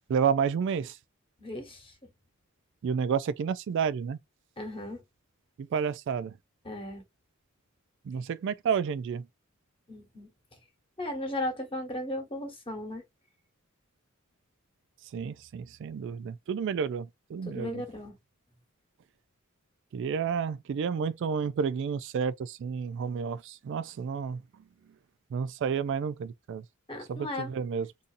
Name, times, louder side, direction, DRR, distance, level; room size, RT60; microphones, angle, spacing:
voice 1, 0.1-1.0 2.8-4.2 5.6-6.3 8.1-9.3 15.1-17.8 19.9-24.4 25.3-26.6 27.1-27.9, right 6 dB, 60° right, 0.3 m, -30 dB
voice 2, 1.4-1.9 4.6-5.0 6.6-7.0 9.9-10.3 11.0-13.0 17.5-18.1 26.9-27.5, left 1 dB, 25° left, 1.3 m, -36 dB
3.9 x 2.6 x 2.5 m
head